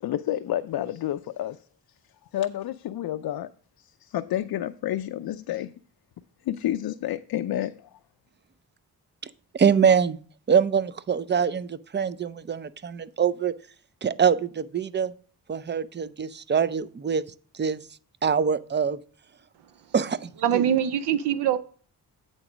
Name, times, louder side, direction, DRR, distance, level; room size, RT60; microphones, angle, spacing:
voice 1, 0.0-1.6 2.3-3.5 3.8-5.7 6.4-8.0, left 12 dB, 65° left, 0.5 m, -30 dB
voice 2, 9.5-10.2 10.5-13.5 14.0-15.1 15.5-17.2 17.5-17.8 18.2-19.0 19.9-20.6, right 7 dB, 25° right, 0.5 m, -24 dB
voice 3, 20.4-21.6, right 10 dB, 80° right, 0.6 m, -23 dB
8.7 x 4.0 x 6.1 m
cardioid pair, 65°, 40 cm